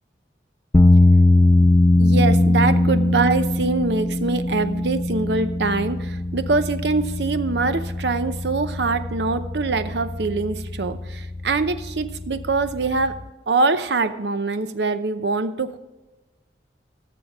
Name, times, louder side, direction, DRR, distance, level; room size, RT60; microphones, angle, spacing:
sound 1, 0.7-13.2, left 2 dB, 15° left, 0.3 m, -21 dB
voice 1, 1.6-13.1 13.5-15.8, right 3 dB, 70° right, 10 dB, 0.7 m, -24 dB
17.0 x 6.9 x 3.6 m, 1.1 s
head